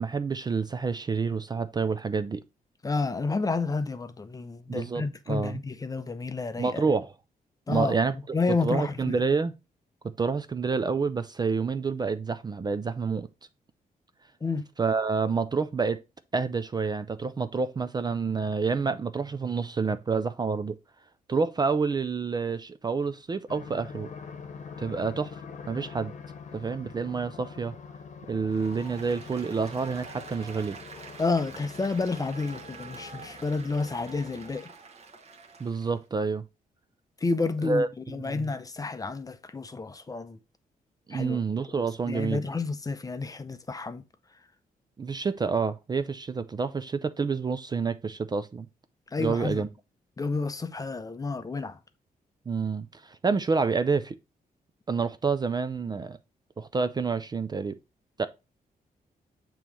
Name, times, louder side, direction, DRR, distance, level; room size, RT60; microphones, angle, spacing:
voice 1, 0.0-2.4 4.7-5.6 6.6-7.1 7.7-9.5 10.2-13.3 14.8-16.0 16.3-20.8 21.3-24.1 24.8-25.4 25.7-26.1 26.5-27.7 28.3-30.8 35.6-36.4 37.6-38.5 41.1-42.4 45.0-48.7 49.2-49.7 52.5-54.2 54.9-56.2 56.6-57.8 58.2-58.3, right 5 dB, 25° right, 0.4 m, -28 dB
voice 2, 2.8-6.8 7.7-7.9 8.3-9.2 14.4-14.7 31.2-34.7 37.2-40.4 41.1-41.4 42.0-44.0 49.1-49.6 50.2-51.8, left 3 dB, 25° left, 0.6 m, -30 dB
sound 1, 23.5-34.6, left 5 dB, 50° left, 1.0 m, -45 dB
Applause, 28.5-36.0, right 4 dB, 45° right, 1.2 m, -46 dB
7.2 x 3.0 x 4.6 m
cardioid pair, 105°, 15 cm